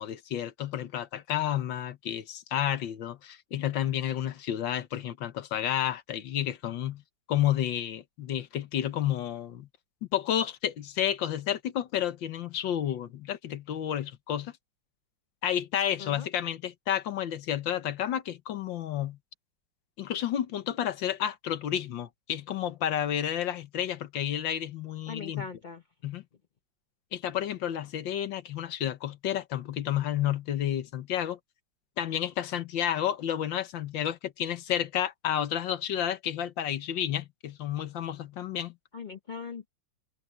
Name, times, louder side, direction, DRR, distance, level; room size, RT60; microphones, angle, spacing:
voice 1, 0.0-7.0 7.3-9.7 10.1-14.5 15.4-19.2 20.0-25.5 26.0-26.2 27.1-31.4 32.0-38.7, left 10 dB, 75° left, 1.7 m, -31 dB
voice 2, 25.1-25.8 38.9-39.7, left 5 dB, 55° left, 0.5 m, -40 dB
omnidirectional pair, 2.1 m